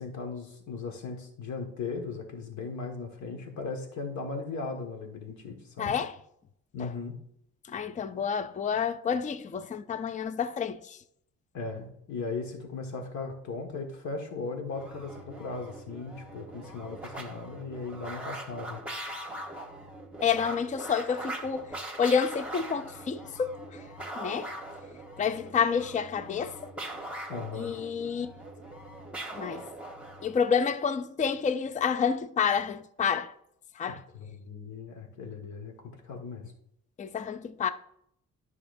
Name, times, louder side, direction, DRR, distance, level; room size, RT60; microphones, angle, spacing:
voice 1, 0.0-6.0 6.7-7.2 11.5-18.8 27.3-27.8 33.9-36.5, left 4 dB, 70° left, 1.7 m, -37 dB
voice 2, 5.8-6.2 6.8-6.9 7.7-11.0 20.2-23.8 24.2-24.5 25.2-26.7 27.5-28.3 29.3-29.7 30.2-33.3 33.8-34.0 37.0-37.7, left 6 dB, 25° left, 0.4 m, -29 dB
sound 1, 14.7-30.4, right 1 dB, 5° right, 1.4 m, -41 dB
10.5 x 6.0 x 2.6 m
cardioid pair, 90°, 30 cm